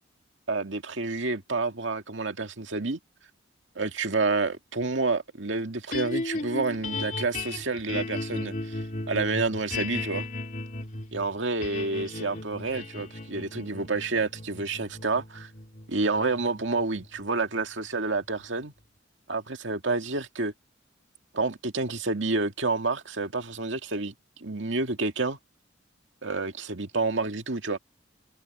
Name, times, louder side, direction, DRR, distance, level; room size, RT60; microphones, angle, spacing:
voice 1, 0.5-3.0 3.8-10.3 11.1-15.5 15.9-18.7 19.3-20.5 21.3-24.1 24.4-25.4 26.2-27.8, right 3 dB, 75° right, 2.1 m, -29 dB
sound 1, 5.9-18.2, left 2 dB, 40° left, 2.7 m, -36 dB
head